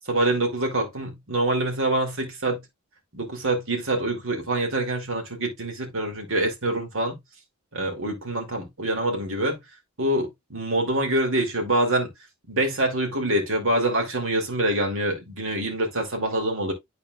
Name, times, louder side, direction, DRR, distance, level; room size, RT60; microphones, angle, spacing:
voice 1, 0.1-2.6 3.1-7.2 7.7-9.6 10.0-12.1 12.5-16.7, right 1 dB, 65° right, 2.5 m, -25 dB
12.0 x 4.2 x 2.3 m
head